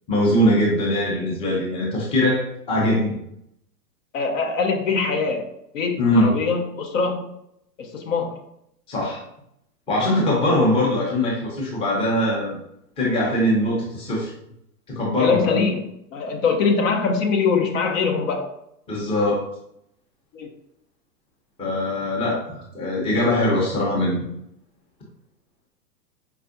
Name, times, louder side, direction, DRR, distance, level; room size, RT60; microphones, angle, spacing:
voice 1, 0.1-3.2 6.0-6.3 8.9-9.2 9.9-12.6 13.0-14.3 14.9-15.6 18.9-19.4 21.6-24.3, left 1 dB, 10° left, -4 dB, 0.7 m, -21 dB
voice 2, 4.1-5.5 5.7-7.3 7.8-8.3 15.2-15.8 16.1-18.5 20.3-20.5, left 5 dB, 50° left, 3 dB, 0.7 m, -22 dB
4.5 x 2.4 x 2.5 m, 0.76 s
hypercardioid pair, 125°, 49 cm